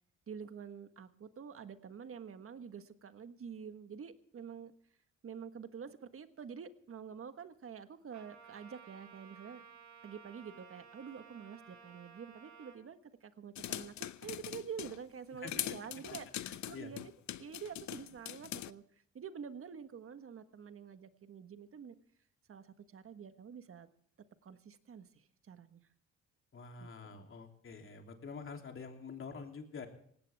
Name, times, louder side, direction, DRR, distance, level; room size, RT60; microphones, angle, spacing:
voice 1, 0.3-4.7 5.2-9.6 10.0-17.1 17.4-21.9 22.5-23.9 24.4-25.9 26.8-27.2, right 7 dB, 45° right, 10 dB, 1.5 m, -48 dB
Trumpet, 8.1-12.8, right 6 dB, 70° right, 5.0 m, -56 dB
sound 1, 13.6-15.0 15.5-18.7, left 12 dB, 65° left, 0.8 m, -42 dB
voice 2, 15.3-15.6 16.1-16.9 26.5-29.9, left 5 dB, 45° left, 3 dB, 3.2 m, -47 dB
18.5 x 16.5 x 3.5 m, 0.64 s
cardioid pair, 90°, 30 cm